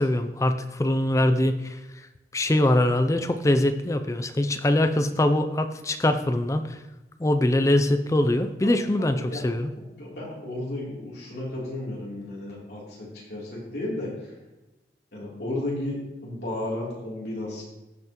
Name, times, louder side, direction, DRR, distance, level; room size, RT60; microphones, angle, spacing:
voice 1, 0.0-1.8 2.3-6.8 7.2-9.7, left 1 dB, 15° left, 9 dB, 0.4 m, -23 dB
voice 2, 9.0-9.4 9.8-14.3 15.1-17.6, left 1 dB, 65° left, -5 dB, 3.2 m, -33 dB
15.5 x 5.6 x 3.0 m, 1.0 s
head